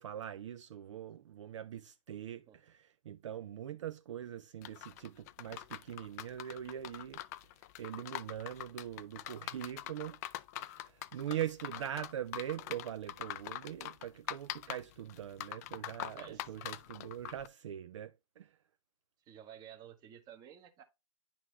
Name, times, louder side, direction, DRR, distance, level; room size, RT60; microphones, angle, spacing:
voice 1, 0.0-7.2 7.8-10.2 10.6-18.5, right 10 dB, 60° right, 0.4 m, -42 dB
sound 1, 4.6-17.5, left 14 dB, 30° left, 0.3 m, -44 dB
voice 2, 16.1-16.5 19.2-20.8, right 10 dB, 20° right, 1.1 m, -53 dB
9.9 x 3.9 x 3.1 m
hypercardioid pair, 130°, 18 cm